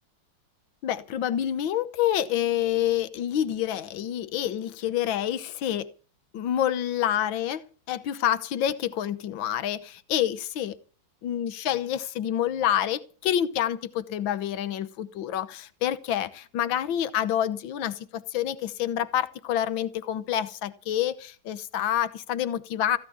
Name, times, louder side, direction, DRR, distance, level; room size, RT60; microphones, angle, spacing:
voice 1, 0.8-5.9 6.3-10.8 11.2-23.0, left 11 dB, 75° left, 15 dB, 1.8 m, -28 dB
15.5 x 11.0 x 7.1 m, 0.40 s
omnidirectional pair, 2.2 m